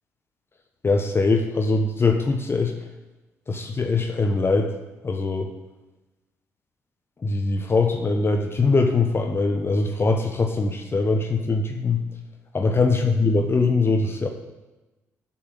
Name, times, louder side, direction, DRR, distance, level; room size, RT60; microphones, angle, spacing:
voice 1, 0.8-2.7 3.5-4.7 5.0-5.5 7.2-12.0 12.5-14.3, left 3 dB, 30° left, 4 dB, 1.1 m, -22 dB
8.2 x 5.9 x 7.8 m, 1.1 s
figure-of-eight pair, 45°, 8 cm